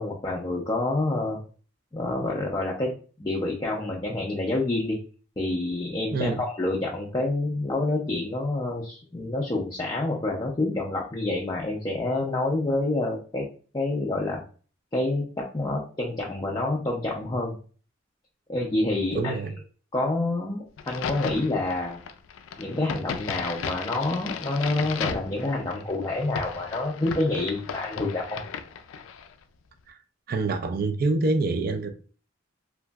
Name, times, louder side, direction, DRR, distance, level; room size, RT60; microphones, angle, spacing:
voice 1, 0.0-1.4 1.9-2.9 3.2-5.0 5.4-13.5 13.7-14.4 14.9-17.6 18.5-19.4 19.9-22.0 22.6-28.4, left 2 dB, 20° left, 0.4 m, -28 dB
voice 2, 19.1-19.5 29.9-30.0 30.3-31.9, right 3 dB, 50° right, 0.4 m, -26 dB
Crack, 20.8-29.3, left 7 dB, 90° left, 0.3 m, -36 dB
3.0 x 2.6 x 2.2 m
head